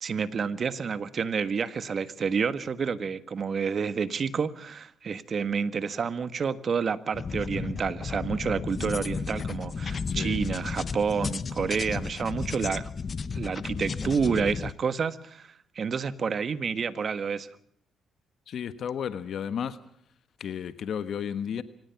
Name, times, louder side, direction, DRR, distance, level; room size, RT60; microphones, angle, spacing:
voice 1, 0.0-12.9 13.3-15.5 15.7-17.5, right 6 dB, 45° right, 12 dB, 1.5 m, -29 dB
sound 1, 7.1-14.7, left 5 dB, 40° left, 1.1 m, -33 dB
voice 2, 10.1-10.4 18.5-19.8 20.4-21.6, left 8 dB, 65° left, 12 dB, 1.3 m, -33 dB
25.0 x 19.0 x 5.9 m, 0.67 s
cardioid pair, 90°, 0 cm